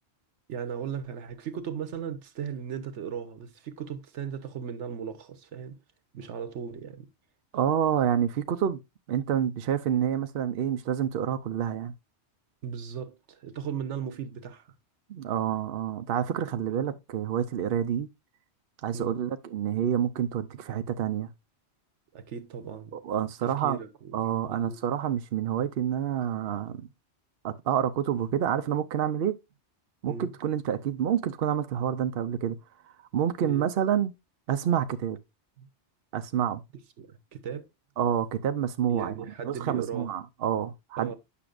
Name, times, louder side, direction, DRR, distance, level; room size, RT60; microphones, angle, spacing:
voice 1, 0.5-5.8 6.1-7.1 12.6-14.7 16.7-17.0 18.9-19.2 22.1-22.9 23.4-24.1 24.5-24.8 30.1-30.3 33.4-33.6 35.6-35.7 37.0-37.7 38.9-40.1 41.0-41.1, right 7 dB, 85° right, 1.2 m, -37 dB
voice 2, 7.5-8.8 9.1-11.9 15.1-18.1 18.8-21.3 22.9-23.8 24.1-26.9 27.4-29.3 30.0-32.6 33.1-34.1 34.5-35.2 36.1-36.6 38.0-41.1, right 9 dB, 65° right, 0.8 m, -28 dB
8.5 x 5.9 x 2.5 m
omnidirectional pair, 1.2 m